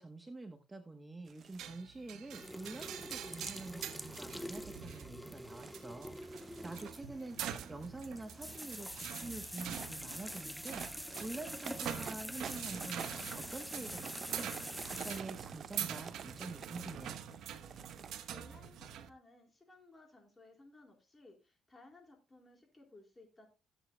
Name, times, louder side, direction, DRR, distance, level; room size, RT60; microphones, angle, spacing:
voice 1, 0.0-14.5 14.8-17.2, right 2 dB, 20° right, 6 dB, 1.0 m, -47 dB
sound 1, 1.3-1.8 2.7-3.2 3.9-4.7 5.4-5.7 6.3-6.7 7.3-7.7 8.2-8.8 9.5-18.2, right 7 dB, 50° right, 0.7 m, -50 dB
sound 2, 1.6-19.1, right 9 dB, 75° right, 1.0 m, -45 dB
sound 3, 2.3-15.2, equal, ahead, 0.6 m, -46 dB
voice 2, 18.3-23.5, left 2 dB, 20° left, 1 dB, 4.1 m, -59 dB
17.0 x 8.2 x 2.2 m, 0.28 s
cardioid pair, 100°, 0 cm